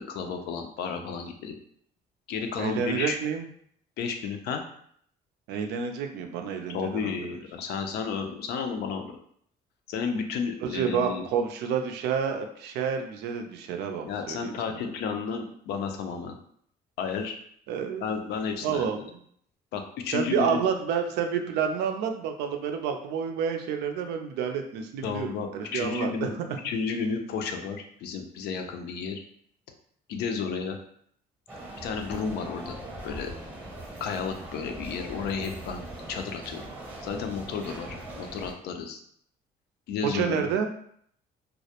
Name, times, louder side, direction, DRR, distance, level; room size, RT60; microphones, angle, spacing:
voice 1, 0.0-1.6 2.3-3.2 4.0-4.6 6.7-9.2 9.9-11.3 14.1-16.4 17.0-17.3 18.0-19.0 19.7-20.6 25.0-26.3 26.6-29.2 30.1-30.8 31.8-32.8 33.0-33.3 34.0-36.7 37.0-39.0 39.9-40.5, left 5 dB, 75° left, 5 dB, 0.4 m, -32 dB
voice 2, 2.6-3.5 5.5-7.2 10.6-14.8 17.7-18.1 18.6-19.2 20.1-26.6 40.1-40.7, right 7 dB, 80° right, 5 dB, 0.4 m, -29 dB
sound 1, 31.5-38.5, right 1 dB, 10° right, 0.7 m, -41 dB
2.2 x 2.0 x 2.8 m, 0.65 s
cardioid pair, 110°, 17 cm